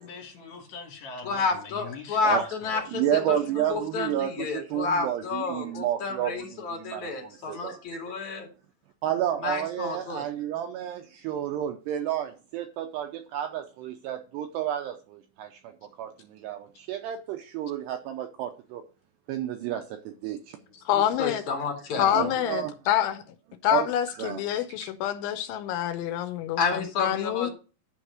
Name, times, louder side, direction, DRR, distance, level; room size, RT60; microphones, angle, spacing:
voice 1, 0.0-2.8 20.7-20.8, left 4 dB, 60° left, 3.9 m, -42 dB
voice 2, 1.2-3.0 3.3-3.4 3.7-8.5 9.4-10.3 20.9-22.3 26.6-27.5, left 4 dB, 45° left, 3.2 m, -30 dB
voice 3, 2.7-8.0 9.0-18.8 19.3-20.6 22.0-22.7 23.7-24.4 24.8-24.9, right 11 dB, 85° right, 2.5 m, -31 dB
voice 4, 20.9-21.4 22.0-23.2 23.6-27.5, left 11 dB, 80° left, 3.1 m, -27 dB
11.5 x 4.8 x 6.4 m
omnidirectional pair, 5.6 m